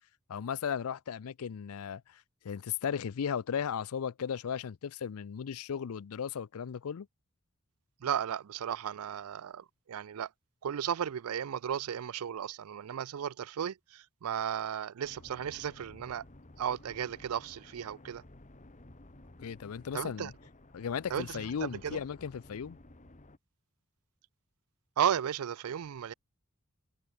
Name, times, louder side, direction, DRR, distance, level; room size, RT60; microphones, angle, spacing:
voice 1, 0.3-7.1 19.4-20.3 20.7-22.8, left 7 dB, 75° left, 0.4 m, -36 dB
voice 2, 8.0-10.3 10.6-16.2 16.6-18.2 19.9-20.3 21.1-22.0 25.0-26.1, right 8 dB, 80° right, 0.4 m, -34 dB
sound 1, 15.0-23.4, left 1 dB, 35° left, 1.7 m, -54 dB
head